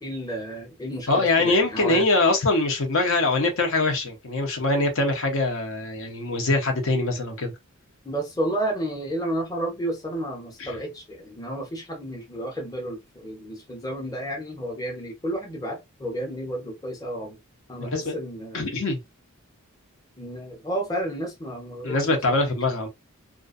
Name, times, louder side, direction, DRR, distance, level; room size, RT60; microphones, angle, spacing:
voice 1, 0.0-2.0 8.0-17.4 17.7-18.7 20.2-22.5, right 1 dB, 15° left, 0.7 m, -31 dB
voice 2, 1.1-7.5 10.6-10.7 17.8-18.2 18.5-19.0 21.8-22.9, left 2 dB, 65° left, 0.7 m, -23 dB
2.4 x 2.2 x 2.4 m
head